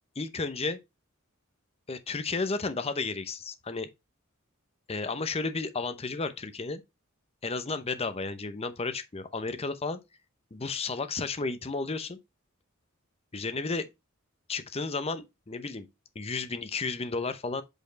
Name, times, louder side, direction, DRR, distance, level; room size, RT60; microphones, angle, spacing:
voice 1, 0.2-0.8 1.9-3.9 4.9-6.8 7.4-10.0 10.5-12.2 13.3-13.9 14.5-15.9 16.1-17.6, left 4 dB, 30° left, 0.7 m, -32 dB
8.0 x 4.4 x 3.1 m
head